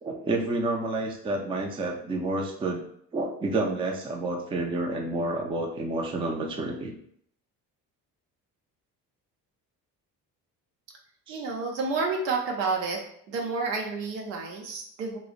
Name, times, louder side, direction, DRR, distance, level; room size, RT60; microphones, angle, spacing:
voice 1, 0.0-2.8 3.1-7.0 11.3-11.4, right 2 dB, 10° right, 1 dB, 0.4 m, -29 dB
voice 2, 11.3-13.0 13.3-15.2, right 4 dB, 80° right, 0 dB, 0.7 m, -30 dB
2.4 x 2.0 x 3.8 m, 0.68 s
figure-of-eight pair, 50°, 49 cm